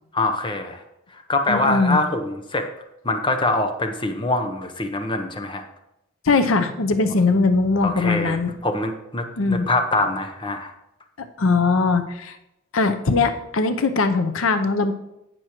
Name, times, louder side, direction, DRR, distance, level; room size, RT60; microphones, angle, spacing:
voice 1, 0.1-0.8 1.1-2.7 3.0-5.6 7.8-10.7, left 2 dB, 25° left, 6 dB, 0.8 m, -24 dB
voice 2, 1.5-2.0 6.2-8.5 9.4-9.7 11.4-12.4 12.7-14.9, left 3 dB, 90° left, 9 dB, 0.7 m, -20 dB
17.0 x 6.2 x 3.0 m, 0.88 s
head